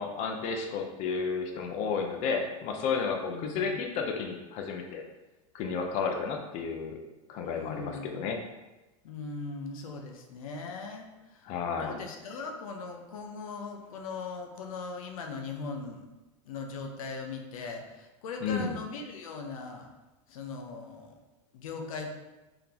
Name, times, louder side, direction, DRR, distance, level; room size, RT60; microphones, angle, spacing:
voice 1, 0.0-5.0 5.5-7.0 7.3-8.4 11.4-12.0 18.4-18.7, left 5 dB, 45° left, 3 dB, 0.6 m, -32 dB
voice 2, 3.3-3.8 7.4-8.3 9.0-11.4 11.8-16.1 16.5-19.9 20.3-21.2 21.5-22.2, left 4 dB, 85° left, 3 dB, 0.6 m, -39 dB
3.7 x 3.5 x 2.9 m, 1.1 s
supercardioid pair, 135°, 17 cm